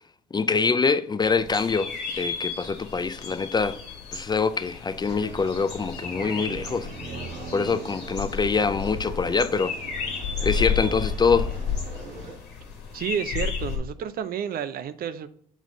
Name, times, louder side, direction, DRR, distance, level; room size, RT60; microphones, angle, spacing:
voice 1, 0.3-3.8 4.1-6.9 7.5-9.8 10.4-11.5, left 5 dB, 25° left, 0.4 m, -24 dB
sound 1, 1.2-13.8, left 6 dB, 70° left, 1.5 m, -33 dB
sound 2, 5.0-12.3, right 3 dB, 75° right, 1.7 m, -40 dB
voice 2, 12.9-15.3, right 8 dB, 55° right, 0.6 m, -30 dB
7.2 x 3.6 x 3.7 m
hypercardioid pair, 55°, 18 cm